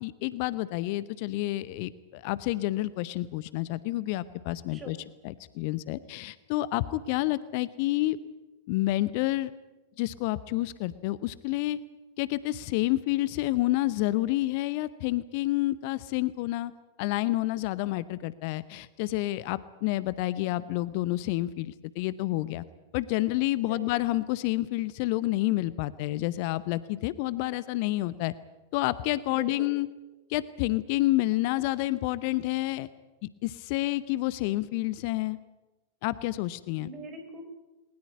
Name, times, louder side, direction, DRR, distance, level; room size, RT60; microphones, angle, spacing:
voice 1, 0.0-5.0 5.2-8.2 8.7-9.5 10.0-11.8 12.2-16.7 17.0-22.6 22.9-28.3 28.7-29.9 30.3-32.9 33.4-35.4 36.0-36.9, left 17 dB, 45° left, 17 dB, 0.7 m, -29 dB
voice 2, 29.3-29.7 36.7-37.4, right 3 dB, 25° right, 6 dB, 5.0 m, -43 dB
20.5 x 19.5 x 9.5 m, 1.1 s
figure-of-eight pair, 90°, 0 cm